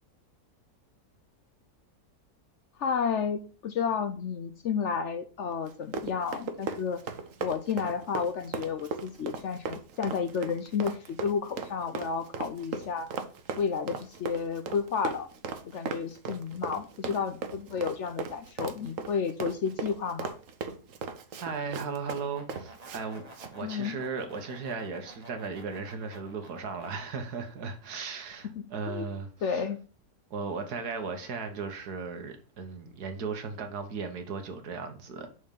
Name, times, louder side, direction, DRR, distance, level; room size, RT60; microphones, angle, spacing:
voice 1, 2.8-7.0 7.4-13.1 13.6-15.3 15.6-20.4 23.6-24.0 28.4-29.1 29.4-29.8, left 6 dB, 60° left, 0.9 m, -31 dB
Run, 5.6-23.0 23.3-23.5, right 5 dB, 60° right, 1.2 m, -37 dB
voice 2, 21.4-23.2 23.5-29.6 30.3-35.3, right 5 dB, 80° right, 1.8 m, -36 dB
sound 1, 22.0-27.0, right 2 dB, 25° right, 1.4 m, -51 dB
6.4 x 4.4 x 5.3 m
omnidirectional pair, 1.6 m